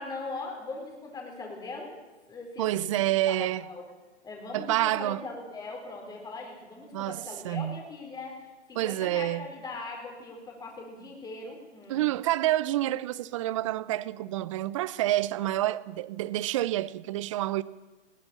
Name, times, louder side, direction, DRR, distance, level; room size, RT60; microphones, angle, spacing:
voice 1, 0.0-1.9 2.3-2.9 3.3-3.8 4.2-12.0, left 3 dB, 10° left, 4.7 m, -40 dB
voice 2, 2.6-3.7 4.5-5.2 6.9-7.8 8.8-9.5 11.9-17.6, right 15 dB, 25° right, 0.7 m, -28 dB
20.0 x 18.5 x 7.2 m
figure-of-eight pair, 130°, 36 cm